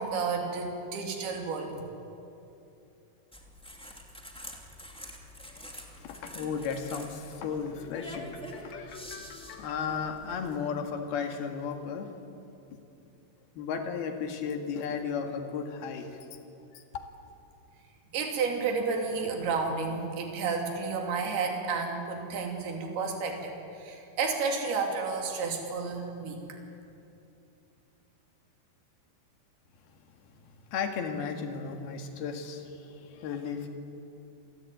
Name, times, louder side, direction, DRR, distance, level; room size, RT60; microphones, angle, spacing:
voice 1, 0.0-1.7 18.1-26.6, right 4 dB, 70° right, 2 dB, 4.8 m, -31 dB
sound 1, 3.3-10.6, equal, ahead, 1.5 m, -46 dB
voice 2, 5.5-12.1 13.6-16.2 16.7-17.0 30.7-33.7, left 6 dB, 70° left, 5 dB, 3.8 m, -35 dB
27.5 x 19.0 x 9.2 m, 2.7 s
omnidirectional pair, 4.7 m